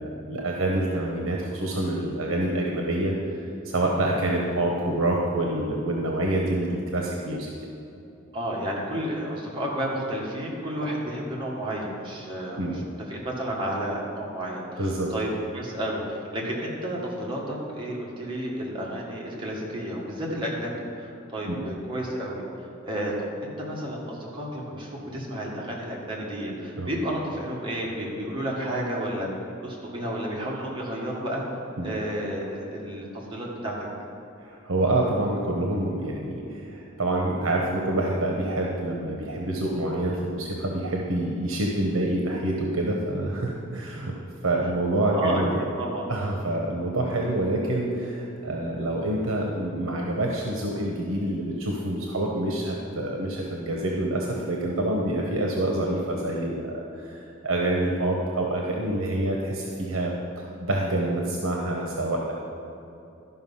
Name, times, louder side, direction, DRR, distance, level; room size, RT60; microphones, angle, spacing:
voice 1, 0.0-7.5 12.6-12.8 14.8-15.1 21.5-21.6 26.8-26.9 31.8-31.9 34.4-44.1 44.4-45.5 46.1-62.3, right 1 dB, 70° right, -1 dB, 1.0 m, -27 dB
voice 2, 8.3-12.6 13.1-31.4 31.8-33.7 45.1-46.1, right 1 dB, 25° right, -4 dB, 1.7 m, -31 dB
12.0 x 5.5 x 5.5 m, 2.8 s
head